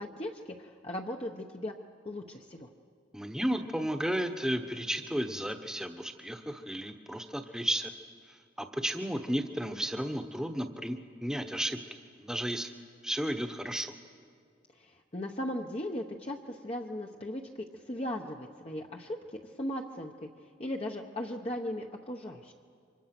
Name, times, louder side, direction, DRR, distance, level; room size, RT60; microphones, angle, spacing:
voice 1, 0.0-1.7 2.0-2.7 14.8-20.3 20.6-22.5, left 1 dB, 35° left, 1 dB, 1.0 m, -38 dB
voice 2, 3.1-7.9 8.3-11.8 12.2-12.7 13.0-14.0, equal, 5° right, 6 dB, 1.1 m, -33 dB
30.0 x 25.5 x 6.0 m, 2.3 s
head